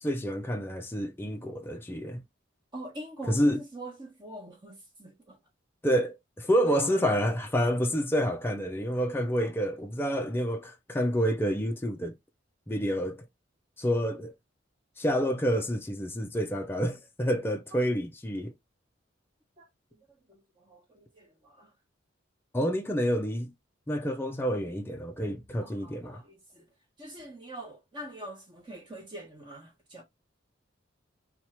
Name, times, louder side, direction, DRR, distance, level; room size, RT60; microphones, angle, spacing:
voice 1, 0.0-2.2 3.2-3.6 5.8-12.1 12.7-13.2 13.8-14.3 15.0-18.5 22.5-23.5 23.9-26.2, equal, 10° left, 0.5 m, -28 dB
voice 2, 2.7-5.4 19.6-19.7 20.3-20.4 20.7-21.7 25.6-26.6 27.0-30.0, right 1 dB, 25° right, 1.1 m, -44 dB
2.9 x 2.4 x 4.3 m
head